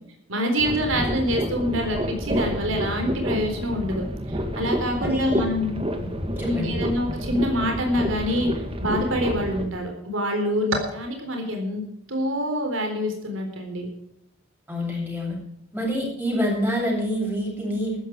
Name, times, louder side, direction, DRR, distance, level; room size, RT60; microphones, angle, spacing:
voice 1, 0.3-5.8 6.4-8.5 8.8-11.8 12.1-13.9, equal, 80° right, 3 dB, 3.9 m, -26 dB
sound 1, 0.6-9.7, equal, 30° right, 2.1 m, -29 dB
voice 2, 5.0-5.4 6.0-6.1 6.4-6.8 14.7-15.4 15.7-18.0, equal, 10° right, -3 dB, 8.0 m, -27 dB
14.5 x 14.0 x 4.7 m, 0.77 s
head